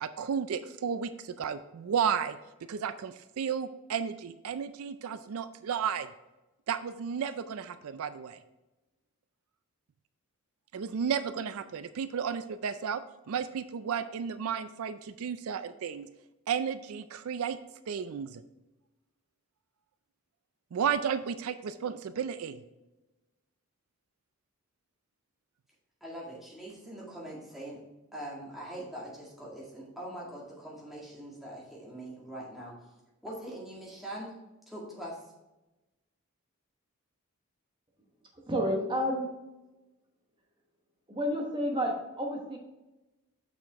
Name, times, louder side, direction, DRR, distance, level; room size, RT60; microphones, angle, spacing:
voice 1, 0.0-2.4 2.7-6.1 6.7-8.4 10.7-13.0 13.3-16.1 16.5-17.6 17.9-18.4 20.7-22.6, right 7 dB, 75° right, 12 dB, 0.4 m, -33 dB
voice 2, 26.0-27.8 28.1-32.7 33.2-34.3 34.7-35.2, right 1 dB, ahead, -6 dB, 1.9 m, -42 dB
voice 3, 38.5-39.3 41.1-42.6, equal, 20° right, 0 dB, 1.1 m, -30 dB
6.5 x 6.1 x 3.4 m, 1.0 s
head